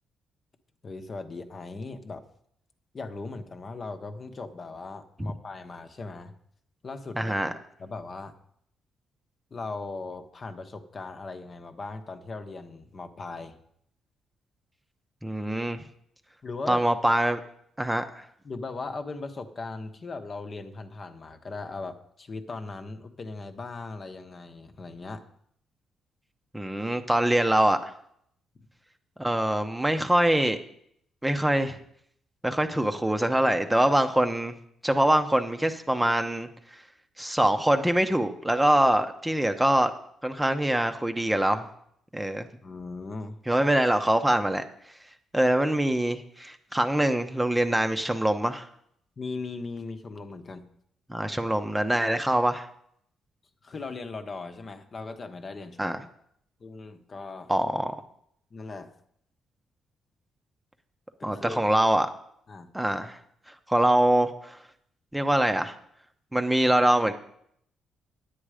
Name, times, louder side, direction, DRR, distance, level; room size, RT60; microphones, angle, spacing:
voice 1, 0.8-2.2 2.9-6.3 6.8-7.3 7.8-8.4 9.5-13.6 16.4-16.9 18.4-25.2 42.6-43.4 49.2-50.7 53.6-56.0 56.6-57.5 58.5-58.9 61.2-61.6 62.5-62.7, left 3 dB, 40° left, 7 dB, 1.0 m, -38 dB
voice 2, 7.2-7.5 15.2-15.8 16.7-17.4 17.8-18.3 26.5-27.9 29.2-30.6 31.2-31.8 32.4-34.5 34.8-36.8 37.2-39.9 40.2-41.7 42.1-42.5 43.5-44.6 45.3-48.7 51.1-52.7 55.8-56.0 57.5-57.9 61.2-62.1 62.7-63.2 63.7-64.6 65.1-65.7 66.3-67.1, right 1 dB, 5° right, 7 dB, 0.8 m, -24 dB
10.0 x 8.7 x 5.0 m, 0.70 s
cardioid pair, 90°, 0 cm